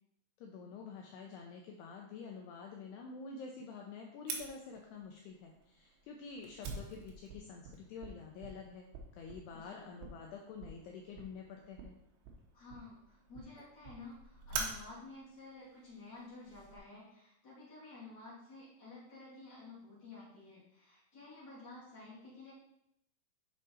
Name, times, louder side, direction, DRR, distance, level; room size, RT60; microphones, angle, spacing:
voice 1, 0.4-8.9 9.1-12.0, left 5 dB, 80° left, 1 dB, 2.4 m, -48 dB
Fire, 4.3-16.8, right 4 dB, 75° right, 3.2 m, -47 dB
voice 2, 9.5-9.8 12.5-22.5, left 3 dB, 25° left, -8 dB, 2.8 m, -52 dB
7.5 x 5.3 x 4.3 m, 0.80 s
omnidirectional pair, 5.5 m